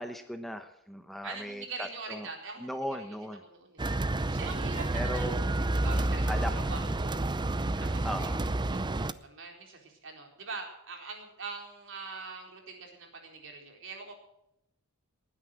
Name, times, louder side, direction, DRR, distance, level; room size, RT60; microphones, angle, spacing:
voice 1, 0.0-2.3 2.6-3.4 4.9-5.4 6.3-6.5 7.8-8.4, equal, ahead, 7 dB, 0.9 m, -37 dB
voice 2, 1.2-3.1 3.4-3.8 4.3-5.3 5.7-7.2 7.8-8.3 8.7-14.1, right 4 dB, 60° right, 2 dB, 4.0 m, -43 dB
sound 1, 3.8-9.1, right 2 dB, 20° right, 0.6 m, -30 dB
19.5 x 9.9 x 6.3 m, 0.80 s
head